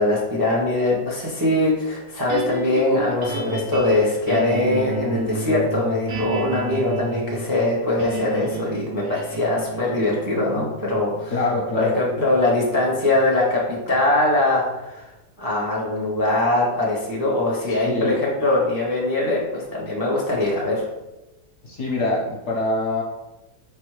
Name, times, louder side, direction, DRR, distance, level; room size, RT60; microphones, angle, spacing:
voice 1, 0.0-11.4 11.7-13.6 13.9-15.1 15.4-20.8, left 2 dB, 25° right, -4 dB, 0.4 m, -22 dB
sound 1, 2.3-14.6, right 3 dB, 75° right, 1.2 m, -33 dB
voice 2, 11.3-12.0 17.7-18.2 21.6-23.0, left 2 dB, 60° left, -2 dB, 0.8 m, -24 dB
4.3 x 3.4 x 3.1 m, 1.0 s
omnidirectional pair, 1.7 m